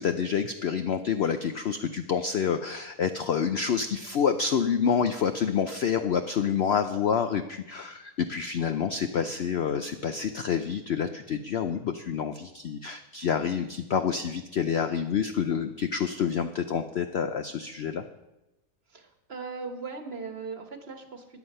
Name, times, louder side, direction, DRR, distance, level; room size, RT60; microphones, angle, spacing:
voice 1, 0.0-18.0, left 7 dB, 65° left, 8 dB, 0.6 m, -28 dB
voice 2, 18.9-21.4, right 4 dB, 45° right, 6 dB, 1.4 m, -39 dB
13.5 x 9.8 x 5.4 m, 0.98 s
omnidirectional pair, 1.7 m